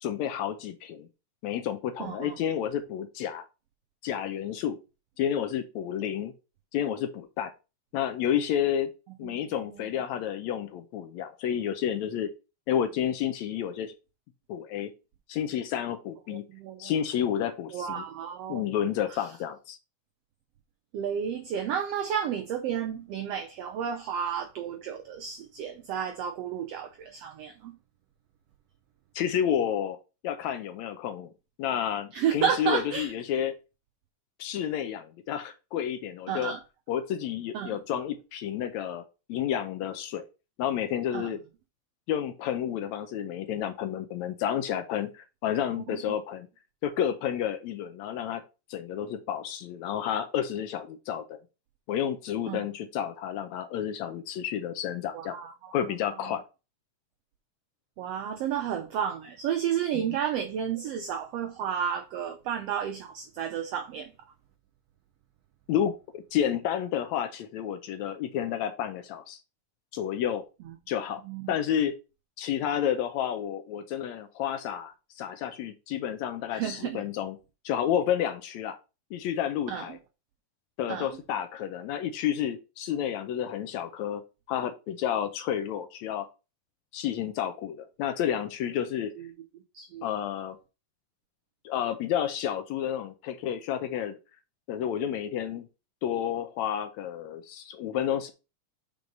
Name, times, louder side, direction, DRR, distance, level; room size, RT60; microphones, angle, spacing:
voice 1, 0.0-1.1 1.4-3.5 4.0-4.8 5.2-6.3 6.7-7.5 7.9-8.9 9.2-12.3 12.7-13.9 14.5-14.9 15.3-16.4 16.8-18.0 18.5-19.8 29.2-30.0 30.2-31.3 31.6-33.6 34.4-36.5 36.9-39.0 39.3-40.3 40.6-41.4 42.1-46.5 46.8-48.4 48.7-51.4 51.9-55.4 55.7-56.4 59.9-60.0 65.7-69.4 69.9-70.4 70.9-71.2 71.5-71.9 72.4-77.4 77.7-78.8 79.1-80.0 80.8-84.2 84.5-86.3 86.9-89.1 90.0-90.6 91.7-94.2 94.7-95.7 96.0-98.3, left 9 dB, 75° left, 1.8 m, -30 dB
voice 2, 2.0-2.3 9.3-9.6 16.3-16.9 17.7-18.6 19.1-19.2 20.9-27.7 32.1-33.1 36.3-36.6 37.5-37.8 41.1-41.3 45.8-45.9 52.5-52.6 55.1-55.7 58.0-64.1 71.2-71.5 76.5-77.0 79.7-79.9 80.9-81.1 89.2-89.3 89.7-90.1, right 8 dB, 80° right, 1.4 m, -32 dB
5.3 x 4.6 x 5.2 m
omnidirectional pair, 3.6 m